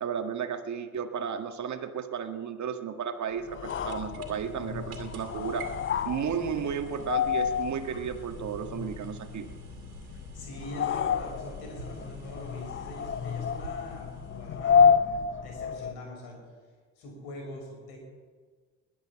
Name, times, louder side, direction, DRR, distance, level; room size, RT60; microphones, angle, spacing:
voice 1, 0.0-5.7 6.1-9.5, right 7 dB, 45° right, 7 dB, 1.8 m, -33 dB
sound 1, 3.2-15.0, right 7 dB, 85° right, 2.4 m, -48 dB
sound 2, 3.5-16.0, left 6 dB, 30° left, 0.7 m, -29 dB
voice 2, 10.0-14.9 15.4-16.4 17.0-18.0, left 1 dB, 65° left, 2 dB, 6.1 m, -43 dB
20.5 x 8.7 x 7.2 m, 1.5 s
figure-of-eight pair, 50°, 42 cm